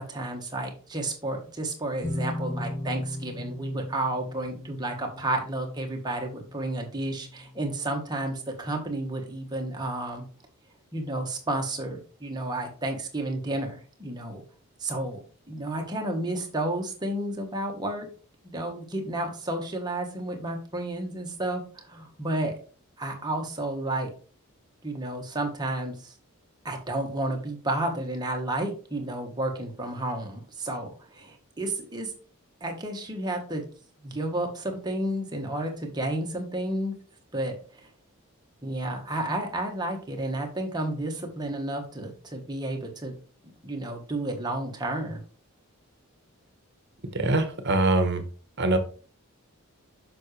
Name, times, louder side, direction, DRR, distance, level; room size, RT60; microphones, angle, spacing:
voice 1, 0.0-10.2 10.9-14.4 14.8-15.2 15.5-18.1 18.4-22.6 23.0-24.1 24.8-26.1 26.6-32.1 32.6-33.6 34.0-37.0 37.3-37.9 38.6-43.1 43.6-45.2, right 1 dB, 20° right, 1 dB, 1.5 m, -31 dB
sound 1, 2.0-7.6, left 1 dB, 15° left, 1.4 m, -36 dB
voice 2, 47.1-48.2 48.6-48.8, right 2 dB, 50° right, 8 dB, 1.2 m, -23 dB
7.5 x 6.1 x 3.3 m, 0.39 s
head